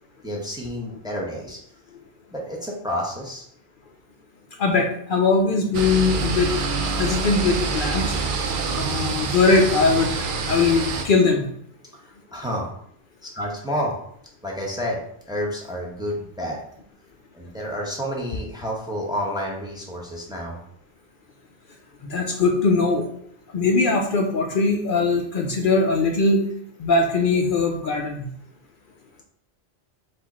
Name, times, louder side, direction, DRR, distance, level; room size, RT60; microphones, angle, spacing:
voice 1, 0.2-1.6 2.3-3.4 12.0-12.7 13.2-13.9 14.4-15.0 15.3-16.6 17.3-20.6, equal, 5° right, -2 dB, 0.7 m, -29 dB
voice 2, 4.6-6.5 7.0-8.1 8.6-10.1 10.5-11.5 22.0-23.1 23.5-26.4 26.8-28.3, left 3 dB, 60° left, 2 dB, 0.7 m, -20 dB
sound 1, 5.7-11.1, right 4 dB, 60° right, 0.7 m, -26 dB
4.7 x 2.5 x 4.1 m, 0.67 s
omnidirectional pair, 1.0 m